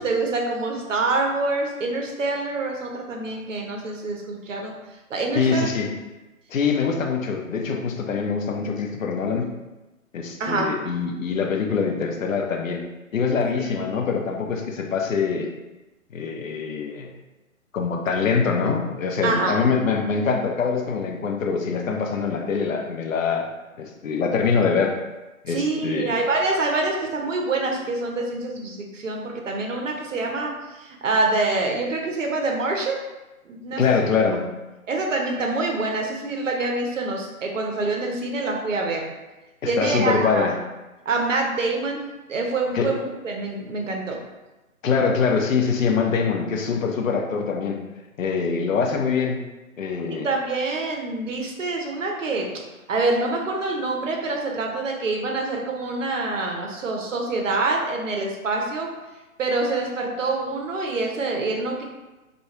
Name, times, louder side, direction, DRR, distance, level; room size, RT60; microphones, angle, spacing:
voice 1, 0.0-4.7 5.1-5.7 10.4-10.7 13.6-14.0 19.2-19.5 25.5-33.0 33.4-33.8 34.9-39.1 39.6-40.5 41.1-44.2 50.2-52.6 52.9-58.9 59.4-61.8, right 3 dB, 60° right, 1 dB, 0.6 m, -26 dB
voice 2, 5.3-5.9 6.5-9.5 10.1-12.8 13.1-15.5 16.1-17.1 17.7-23.5 23.8-25.0 25.4-26.1 33.7-34.4 39.6-40.6 42.7-42.9 44.8-47.8 48.2-49.4 49.8-50.3, left 5 dB, 65° left, 2 dB, 0.5 m, -24 dB
2.2 x 2.2 x 3.0 m, 1.1 s
figure-of-eight pair, 135°, 42 cm